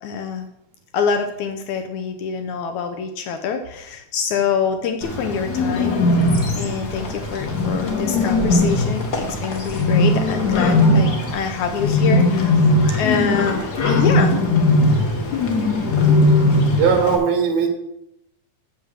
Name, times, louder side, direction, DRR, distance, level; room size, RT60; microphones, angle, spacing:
voice 1, 0.0-0.5 0.9-6.3 6.6-12.7 13.0-14.5 14.8-15.0 15.3-15.5 16.1-16.3, left 6 dB, 80° left, 7 dB, 1.7 m, -25 dB
Bird, 5.0-17.2, left 2 dB, 55° left, 1.1 m, -19 dB
voice 2, 16.8-17.7, right 6 dB, 70° right, 5 dB, 3.1 m, -18 dB
8.4 x 7.3 x 6.6 m, 0.83 s
omnidirectional pair, 4.3 m